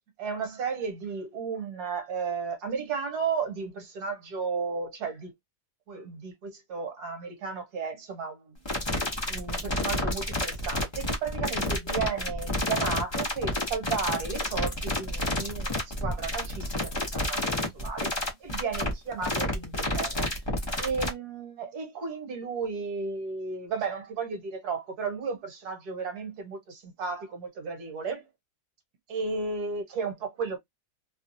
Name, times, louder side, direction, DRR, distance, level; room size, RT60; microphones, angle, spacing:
voice 1, 0.2-5.3 5.9-8.6 9.3-20.4 20.8-28.2 29.1-30.6, right 5 dB, 65° right, 1.4 m, -34 dB
sound 1, 8.6-21.1, left 1 dB, 35° left, 0.4 m, -29 dB
3.0 x 2.2 x 2.6 m
omnidirectional pair, 1.9 m